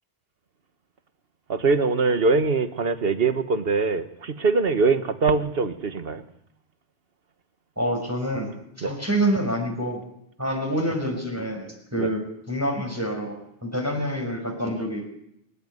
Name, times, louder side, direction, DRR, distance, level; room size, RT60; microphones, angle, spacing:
voice 1, 1.5-6.2 8.8-8.9 12.0-12.1, right 4 dB, 55° right, 9 dB, 1.6 m, -23 dB
voice 2, 7.8-8.5 8.8-10.0 10.4-13.3 13.6-15.1, right 1 dB, 15° right, 0 dB, 5.7 m, -27 dB
27.5 x 14.5 x 9.7 m, 0.76 s
omnidirectional pair, 1.2 m